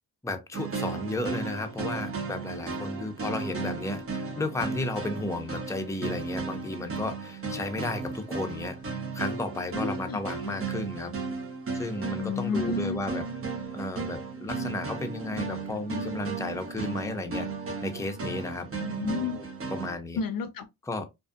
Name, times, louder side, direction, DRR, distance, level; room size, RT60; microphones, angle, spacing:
voice 1, 0.2-8.8 9.1-11.1 11.7-13.2 13.7-17.5 17.8-18.7 19.3-19.4 19.7-20.2 20.9-21.0, left 2 dB, 5° left, 0.6 m, -33 dB
sound 1, 0.5-19.9, right 4 dB, 30° right, 0.8 m, -35 dB
voice 2, 9.7-10.2 12.2-13.0 18.8-19.4 20.2-20.7, left 5 dB, 55° left, 0.5 m, -31 dB
2.6 x 2.3 x 2.4 m
supercardioid pair, 55°, 42 cm